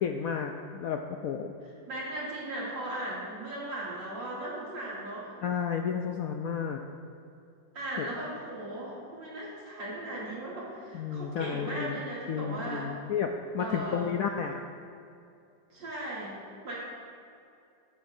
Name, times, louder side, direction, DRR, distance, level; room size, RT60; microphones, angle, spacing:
voice 1, 0.0-1.5 5.4-6.8 8.0-8.1 10.9-12.0 12.3-14.6, left 7 dB, 75° left, 4 dB, 0.8 m, -32 dB
voice 2, 1.9-5.3 7.7-13.0 13.6-14.1 15.7-16.8, right 1 dB, 90° right, -7 dB, 3.3 m, -37 dB
14.5 x 9.2 x 2.7 m, 2.6 s
omnidirectional pair, 2.0 m